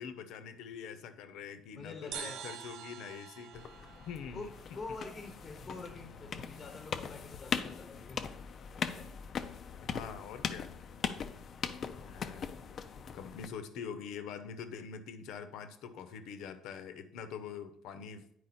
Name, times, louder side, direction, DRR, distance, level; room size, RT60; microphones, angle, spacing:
voice 1, 0.0-4.5 9.8-10.8 12.0-12.6 13.0-18.3, left 7 dB, 70° left, 10 dB, 0.8 m, -44 dB
voice 2, 1.7-2.4 4.3-8.2 8.7-9.1, left 3 dB, 20° left, 4 dB, 0.9 m, -46 dB
sound 1, 2.1-5.6, right 10 dB, 60° right, 0.5 m, -47 dB
sound 2, 3.5-13.5, left 7 dB, 35° left, 0.5 m, -40 dB
9.5 x 4.8 x 4.2 m, 0.73 s
cardioid pair, 155°, 0 cm